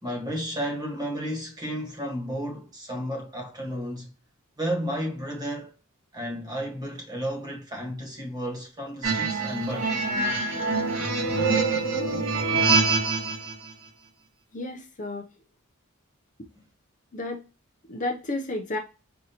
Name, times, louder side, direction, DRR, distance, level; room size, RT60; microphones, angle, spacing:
voice 1, 0.0-4.1 4.6-5.7 6.1-9.9, equal, 20° right, 1.3 m, -32 dB
sound 1, 9.0-13.5, right 3 dB, 75° right, 1.5 m, -25 dB
voice 2, 14.5-15.3 17.1-17.4 17.9-18.8, left 2 dB, 35° left, 0.5 m, -31 dB
5.5 x 2.6 x 2.8 m
head